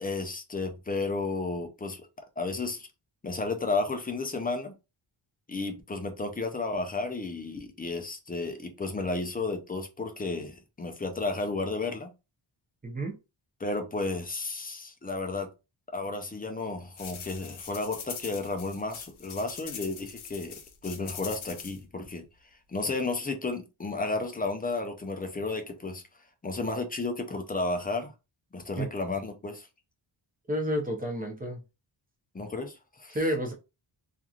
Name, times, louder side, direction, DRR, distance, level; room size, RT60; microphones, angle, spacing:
voice 1, 0.0-2.1 2.4-2.9 3.2-4.7 5.5-12.1 13.6-15.5 15.9-22.2 22.7-26.0 26.4-28.1 28.5-29.7 32.3-33.2, left 3 dB, 20° left, 0.3 m, -32 dB
voice 2, 12.8-13.1 28.8-28.9 30.5-31.6 33.1-33.5, equal, 20° right, 0.7 m, -30 dB
sound 1, 17.0-21.8, left 8 dB, 80° left, 0.7 m, -42 dB
2.9 x 2.5 x 2.3 m
wide cardioid pair, 175°, 48 cm